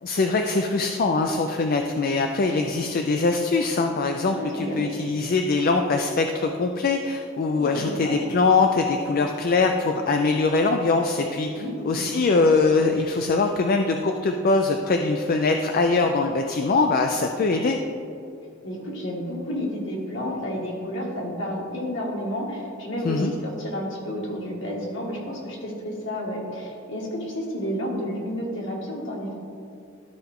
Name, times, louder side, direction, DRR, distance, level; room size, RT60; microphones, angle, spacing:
voice 1, 0.0-17.8 23.0-23.3, left 3 dB, 45° left, 4 dB, 0.4 m, -22 dB
voice 2, 4.3-4.9 7.5-8.2 11.5-12.1 18.6-29.4, equal, 65° left, -2 dB, 1.8 m, -31 dB
12.5 x 4.4 x 3.6 m, 2.6 s
head